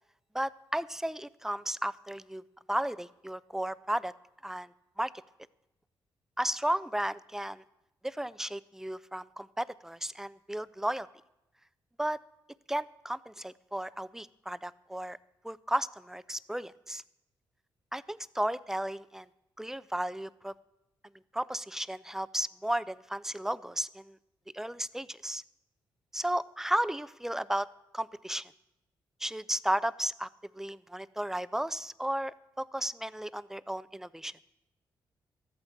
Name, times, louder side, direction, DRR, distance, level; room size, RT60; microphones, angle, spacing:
voice 1, 0.3-2.4 2.7-4.1 4.4-4.7 5.0-5.1 6.4-7.6 8.0-11.1 12.0-12.2 12.7-15.2 15.4-17.0 17.9-19.3 19.6-20.5 21.3-24.2 24.5-25.4 26.1-27.7 27.9-28.5 29.2-30.3 30.6-34.3, right 1 dB, 5° right, 19 dB, 0.5 m, -34 dB
13.5 x 8.9 x 7.6 m, 0.89 s
supercardioid pair, 60°, 9 cm